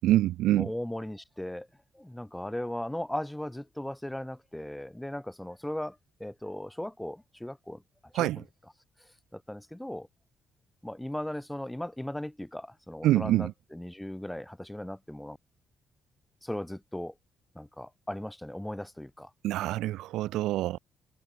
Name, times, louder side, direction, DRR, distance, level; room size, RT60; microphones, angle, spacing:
voice 1, 0.0-0.7 8.1-8.4 13.0-13.5 19.4-20.8, right 15 dB, 90° right, 6.1 m, -25 dB
voice 2, 0.5-1.7 1.9-7.8 8.2-8.3 9.3-10.1 10.8-15.4 16.4-17.1 17.5-19.3, left 1 dB, 5° left, 6.4 m, -37 dB
cardioid pair, 90°, 0 cm